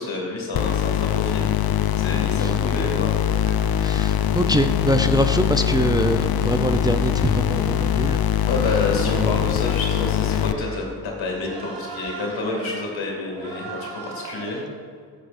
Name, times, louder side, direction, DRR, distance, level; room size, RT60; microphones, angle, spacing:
voice 1, 0.0-1.5 2.0-3.2 8.5-14.7, left 3 dB, 75° left, 0 dB, 2.5 m, -28 dB
sound 1, 0.5-10.5, left 10 dB, 50° left, 0.6 m, -22 dB
sound 2, 3.2-14.6, right 4 dB, 65° right, 2.0 m, -41 dB
voice 2, 3.8-8.2 9.1-9.5, right 1 dB, 10° right, 7 dB, 0.5 m, -24 dB
14.0 x 8.3 x 2.6 m, 2.2 s
supercardioid pair, 40°, 47 cm